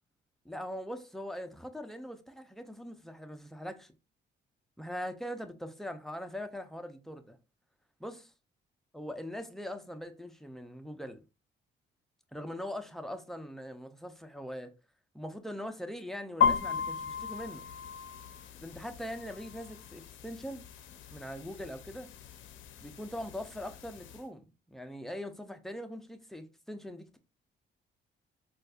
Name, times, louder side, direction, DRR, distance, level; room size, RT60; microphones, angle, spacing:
voice 1, 0.4-3.9 4.8-7.4 8.0-8.2 8.9-11.2 12.3-14.7 15.1-17.6 18.6-20.6 21.1-22.1 22.8-27.2, equal, ahead, 0.5 m, -41 dB
sound 1, 16.4-24.2, left 6 dB, 75° left, 0.5 m, -35 dB
4.1 x 2.4 x 2.3 m
cardioid pair, 90°, 20 cm